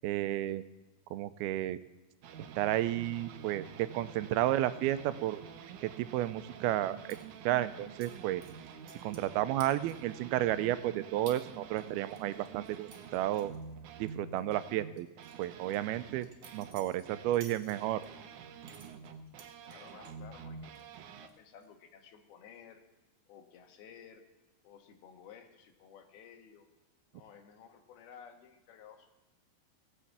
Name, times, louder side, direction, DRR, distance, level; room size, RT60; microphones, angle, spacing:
voice 1, 0.0-0.6 1.1-1.8 2.6-5.4 5.8-7.0 7.5-8.4 9.0-13.5 14.0-15.1 15.4-16.3 16.5-18.0, right 14 dB, 85° right, 14 dB, 2.6 m, -32 dB
sound 1, 2.2-17.4 17.7-21.3, right 6 dB, 70° right, 2.0 m, -48 dB
sound 2, 7.1-7.2 8.0-8.1 8.4-9.3 9.6-10.1 10.6-10.7 11.3-11.4 11.8-14.1 14.4-14.5 15.0-18.1 18.6-20.2 20.6-21.0 21.3-21.7, right 4 dB, 45° right, 2.6 m, -55 dB
voice 2, 19.6-20.9 21.2-22.8 23.3-24.2 24.6-26.7 27.1-29.1, left 7 dB, 85° left, 4 dB, 3.4 m, -54 dB
18.0 x 6.9 x 8.3 m, 1.1 s
omnidirectional pair, 4.3 m